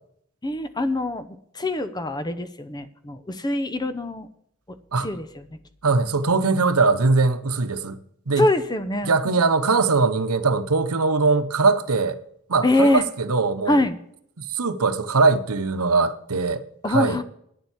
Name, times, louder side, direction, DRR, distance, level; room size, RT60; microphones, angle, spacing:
voice 1, 0.4-4.3 5.0-5.5 8.4-9.4 12.6-13.0 13.7-14.0 16.8-17.2, left 1 dB, 20° left, 0.7 m, -24 dB
voice 2, 5.8-8.0 8.3-8.5 9.0-12.2 12.5-13.8 14.4-17.2, right 4 dB, 85° right, 0.9 m, -21 dB
9.9 x 7.3 x 8.1 m
head